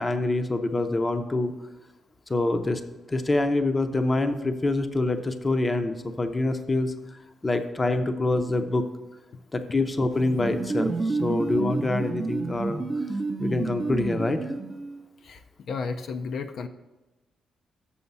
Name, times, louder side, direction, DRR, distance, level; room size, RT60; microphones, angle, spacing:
voice 1, 0.0-1.5 2.3-2.8 3.1-6.9 7.4-8.8 9.5-12.8 13.4-14.4, left 2 dB, 20° left, 8 dB, 0.6 m, -25 dB
sound 1, 10.1-15.0, right 3 dB, 25° right, 0.6 m, -30 dB
voice 2, 15.2-16.7, left 4 dB, 60° left, 6 dB, 0.5 m, -33 dB
7.0 x 7.0 x 5.4 m, 1.1 s
cardioid pair, 125°, 0 cm